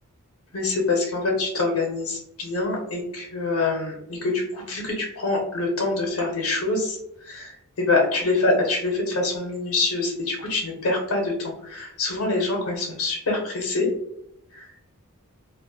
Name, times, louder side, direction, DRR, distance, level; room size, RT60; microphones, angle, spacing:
voice 1, 0.5-13.9 14.5-14.8, left 3 dB, 65° left, -1 dB, 0.6 m, -25 dB
2.3 x 2.1 x 2.6 m, 0.78 s
head